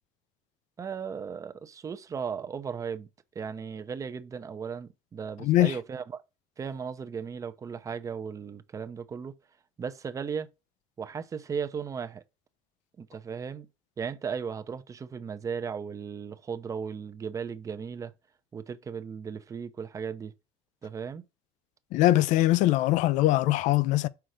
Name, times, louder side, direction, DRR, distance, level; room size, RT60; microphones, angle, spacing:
voice 1, 0.8-3.1 3.3-6.2 6.6-9.3 9.8-10.5 11.0-12.2 13.0-13.7 14.0-18.1 18.5-20.3 20.8-21.2, right 6 dB, 25° right, 0.7 m, -36 dB
voice 2, 5.4-5.7 21.9-24.1, left 15 dB, 65° left, 0.6 m, -22 dB
5.8 x 4.6 x 6.5 m
cardioid pair, 140°, 14 cm